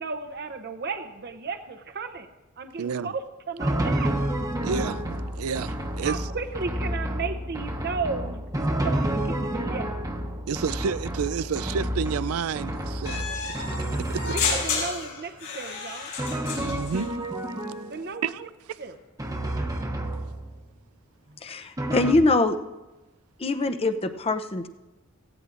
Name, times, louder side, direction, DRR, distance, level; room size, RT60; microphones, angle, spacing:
voice 1, 0.0-2.3 2.6-3.2 3.5-4.2 6.0-8.4 8.8-9.9 14.3-16.1 17.9-18.3 18.8-18.9 21.3-21.4, right 4 dB, 50° right, 0.7 m, -34 dB
voice 2, 2.8-3.1 4.6-6.3 10.5-13.5 14.1-14.4 16.6-17.1 18.2-18.8, right 6 dB, 90° right, 0.4 m, -30 dB
Drum, 3.6-15.0 16.2-18.1 19.2-20.7 21.8-22.1, right 1 dB, 15° right, 1.0 m, -30 dB
sound 1, 13.1-17.1, left 5 dB, 70° left, 5.5 m, -31 dB
voice 3, 21.4-22.6 23.4-24.7, left 2 dB, 25° left, 0.6 m, -23 dB
17.5 x 16.0 x 2.5 m
head